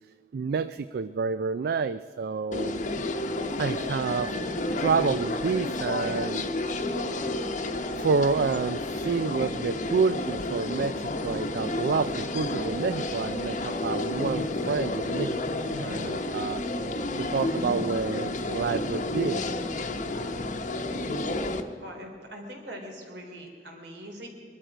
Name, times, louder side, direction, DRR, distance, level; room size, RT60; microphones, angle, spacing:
voice 1, 0.3-2.8 3.6-6.4 8.0-16.6 17.2-19.5, right 5 dB, 60° right, 13 dB, 0.3 m, -29 dB
sound 1, 2.5-21.6, left 2 dB, 45° left, 0.9 m, -31 dB
voice 2, 21.8-24.3, equal, 75° right, 1 dB, 3.2 m, -42 dB
21.5 x 12.5 x 5.1 m, 2.2 s
head